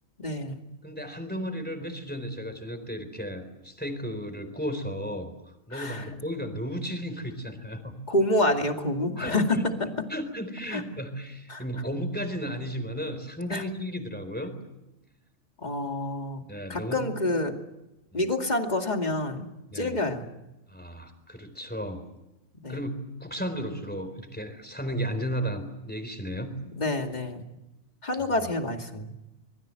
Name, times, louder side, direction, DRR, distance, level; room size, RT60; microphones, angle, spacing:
voice 1, 0.2-0.6 5.7-6.1 8.1-9.6 10.7-10.8 11.5-11.6 13.5-13.6 15.6-16.4 16.7-17.5 18.1-19.5 19.7-20.3 22.6-22.8 26.8-27.5 28.0-29.1, left 1 dB, 30° left, 4 dB, 2.5 m, -27 dB
voice 2, 0.8-8.0 9.2-9.7 10.1-14.5 16.5-17.1 18.1-18.2 19.7-19.9 20.7-22.0 22.7-22.9 23.2-26.5, equal, 5° left, 8 dB, 4.1 m, -34 dB
26.0 x 21.5 x 7.8 m, 0.96 s
omnidirectional pair, 1.4 m